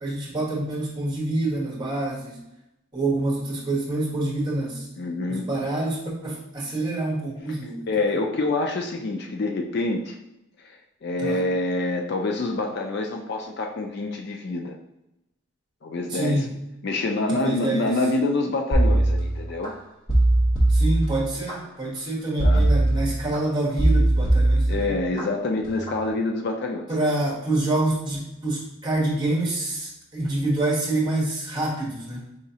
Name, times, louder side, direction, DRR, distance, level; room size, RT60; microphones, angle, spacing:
voice 1, 0.0-2.3 2.9-4.8 5.3-7.9 11.2-11.4 16.1-16.5 17.3-17.9 20.7-24.9 26.9-32.3, right 2 dB, 20° right, -4 dB, 1.1 m, -27 dB
voice 2, 5.0-5.5 7.9-10.2 10.6-10.8 11.0-14.7 15.8-16.5 16.8-19.7 22.4-22.7 24.7-26.8, left 2 dB, 50° left, 3 dB, 0.4 m, -26 dB
sound 1, 18.7-19.7 20.1-21.5 22.4-23.4 23.8-25.2 25.6-26.0, right 1 dB, 25° left, 1.0 m, -20 dB
4.9 x 3.1 x 2.8 m, 0.88 s
head